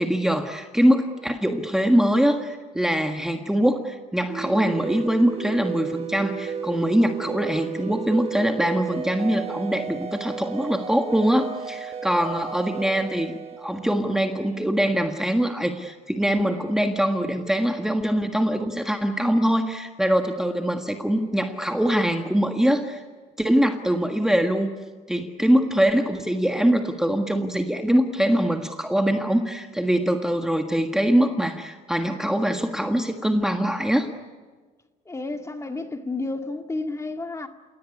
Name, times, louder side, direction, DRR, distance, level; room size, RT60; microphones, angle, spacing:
voice 1, 0.0-23.0 23.4-24.7 25.1-34.1, equal, 5° right, 1.6 m, -23 dB
sound 1, 4.3-14.6, right 7 dB, 35° right, 1.1 m, -34 dB
voice 2, 35.1-37.5, left 2 dB, 15° left, 2.0 m, -31 dB
29.5 x 18.0 x 9.9 m
cardioid pair, 110°, 17 cm